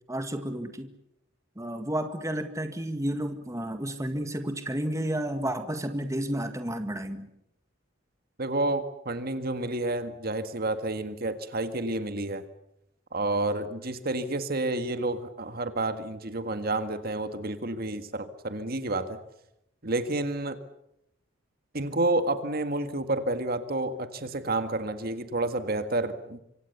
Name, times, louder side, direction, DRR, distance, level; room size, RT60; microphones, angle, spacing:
voice 1, 0.1-0.9 1.6-7.3, right 1 dB, 15° right, 7 dB, 1.9 m, -31 dB
voice 2, 8.4-12.5 13.1-19.2 19.8-20.6 21.7-26.4, right 2 dB, 50° right, 9 dB, 1.8 m, -30 dB
25.5 x 25.5 x 7.0 m, 0.80 s
head